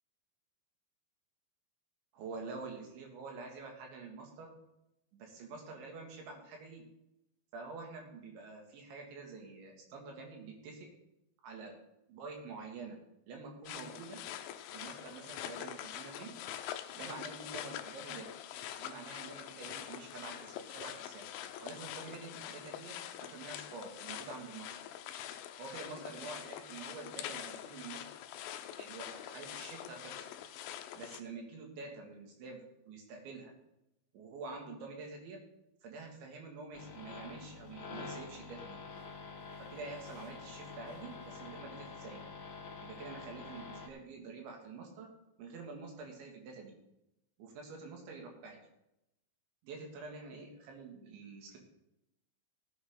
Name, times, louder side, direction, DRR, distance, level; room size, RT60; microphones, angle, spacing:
voice 1, 2.1-4.5 5.1-6.8 7.5-10.9 11.4-11.7 12.1-13.0 13.3-14.2 14.7-16.3 16.9-18.3 18.8-21.3 21.6-24.7 25.6-28.1 28.8-30.3 31.0-33.5 34.1-35.4 35.8-38.8 39.6-42.3 42.8-45.1 45.4-46.7 47.4-48.6 49.6-51.6, right 4 dB, 65° right, 1 dB, 4.7 m, -47 dB
sound 1, 13.7-31.2, left 11 dB, 85° left, 3.4 m, -45 dB
sound 2, 36.7-43.9, left 4 dB, 45° left, 2.6 m, -47 dB
17.0 x 9.3 x 4.0 m, 0.84 s
omnidirectional pair, 5.8 m